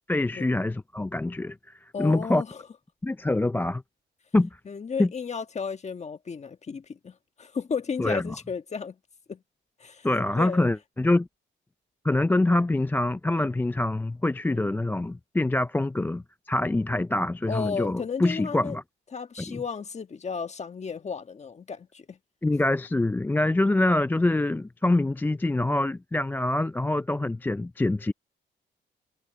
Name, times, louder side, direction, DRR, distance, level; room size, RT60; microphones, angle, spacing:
voice 1, 0.1-2.4 3.0-3.8 4.3-4.5 5.0-5.1 8.0-8.2 10.0-11.3 12.0-18.8 19.5-19.6 22.4-28.1, left 2 dB, 10° left, 0.4 m, -25 dB
voice 2, 1.9-2.6 4.6-9.0 9.3-9.4 9.8-10.7 14.5-14.7 17.5-18.8 19.1-22.2, left 5 dB, 35° left, 1.5 m, -34 dB
cardioid pair, 90°, 20 cm